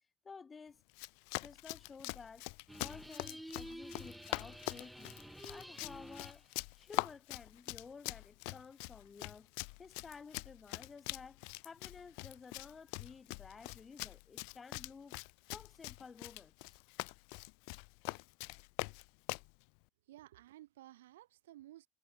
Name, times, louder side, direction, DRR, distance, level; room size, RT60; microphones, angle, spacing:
voice 1, 0.2-0.8 1.4-2.4 2.8-5.2 5.5-6.4 6.8-9.5 9.8-15.2 15.5-16.8, left 5 dB, 25° left, 3.3 m, -53 dB
Run, 0.9-19.5, left 40 dB or more, 60° left, 1.4 m, -43 dB
sound 1, 2.7-6.5, right 1 dB, 5° right, 3.1 m, -50 dB
voice 2, 20.1-21.9, right 14 dB, 65° right, 1.8 m, -55 dB
figure-of-eight pair, 65°, 0 cm